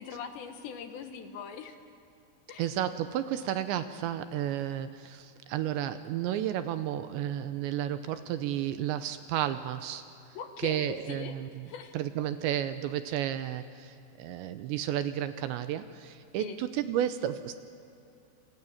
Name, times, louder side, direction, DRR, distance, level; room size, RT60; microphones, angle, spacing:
voice 1, 0.0-1.8 2.5-2.7 10.3-11.4 11.7-12.0 16.4-16.6, left 7 dB, 70° left, 7 dB, 3.4 m, -41 dB
voice 2, 2.6-10.0 10.6-11.7 11.9-17.6, right 11 dB, 80° right, 10 dB, 2.9 m, -32 dB
28.0 x 27.0 x 7.3 m, 2.7 s
omnidirectional pair, 5.6 m